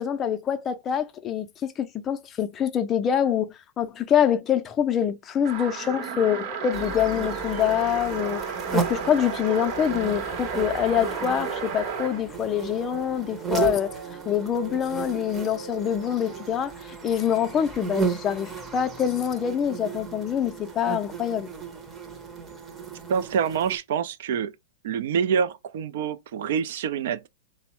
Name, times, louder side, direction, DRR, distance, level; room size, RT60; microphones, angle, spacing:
voice 1, 0.0-3.5 3.8-8.4 8.7-14.0 14.3-21.5, left 9 dB, 25° left, 0.4 m, -25 dB
sound 1, 5.4-12.2, right 5 dB, 50° right, 0.8 m, -33 dB
sound 2, 6.7-23.8, right 6 dB, 15° right, 0.7 m, -34 dB
sound 3, 6.8-16.5, right 4 dB, 85° right, 0.9 m, -42 dB
voice 2, 23.1-24.5 24.8-27.3, right 7 dB, 65° right, 0.4 m, -26 dB
3.4 x 2.0 x 2.9 m
hypercardioid pair, 125°, 0 cm